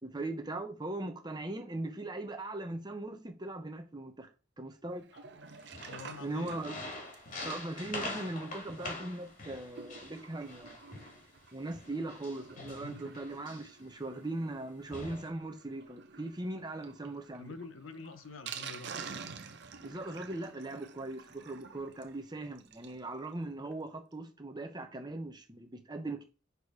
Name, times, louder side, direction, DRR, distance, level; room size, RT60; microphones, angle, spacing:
voice 1, 0.0-4.3 4.6-5.1 6.2-6.8 7.4-10.8 11.5-17.5 19.8-26.2, right 2 dB, 20° right, 1.0 m, -39 dB
Sink (filling or washing), 5.0-23.0 23.4-23.5 23.7-23.8 24.1-24.2, right 6 dB, 60° right, 0.7 m, -50 dB
sound 1, 5.6-11.2 11.7-13.9 14.5-14.6 14.9-15.3, left 2 dB, 45° left, 2.2 m, -44 dB
voice 2, 5.9-6.6 7.8-7.9 12.6-13.1 17.1-19.4, left 4 dB, 80° left, 0.7 m, -48 dB
6.8 x 4.1 x 4.8 m
head